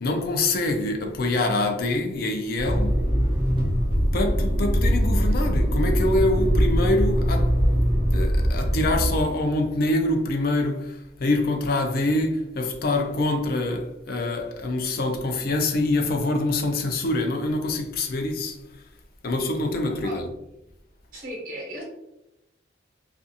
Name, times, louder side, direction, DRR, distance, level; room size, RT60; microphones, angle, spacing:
voice 1, 0.0-2.9 4.1-7.5 8.1-18.6 19.2-20.3, left 2 dB, 50° left, 0.4 m, -25 dB
Motor vehicle (road), 2.6-9.2, equal, 25° right, 0.6 m, -22 dB
voice 2, 21.1-21.8, equal, 50° right, 1.0 m, -35 dB
2.4 x 2.3 x 2.7 m
head